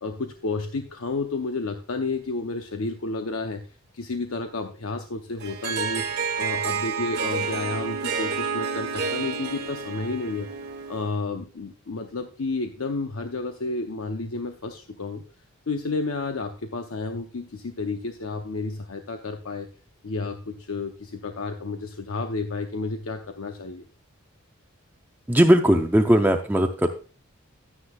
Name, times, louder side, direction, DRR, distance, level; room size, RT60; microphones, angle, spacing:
voice 1, 0.0-3.7 3.9-6.0 6.4-10.5 10.9-15.2 15.7-19.7 20.0-23.9, left 3 dB, 85° left, 6 dB, 0.7 m, -31 dB
Harp, 5.4-11.2, right 5 dB, 50° right, 1.0 m, -30 dB
voice 2, 25.3-26.9, equal, 10° right, 4 dB, 0.5 m, -18 dB
11.5 x 9.7 x 2.3 m, 0.36 s
head